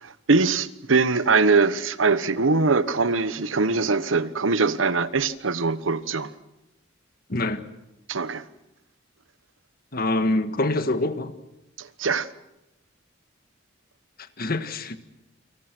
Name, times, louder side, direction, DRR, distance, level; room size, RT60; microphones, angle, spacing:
voice 1, 0.0-6.3 8.1-8.4 11.8-12.3, right 4 dB, 85° right, 1.2 m, -22 dB
voice 2, 7.3-7.6 9.9-11.3 14.4-15.0, left 2 dB, 50° left, 1.7 m, -25 dB
30.0 x 25.5 x 6.2 m
head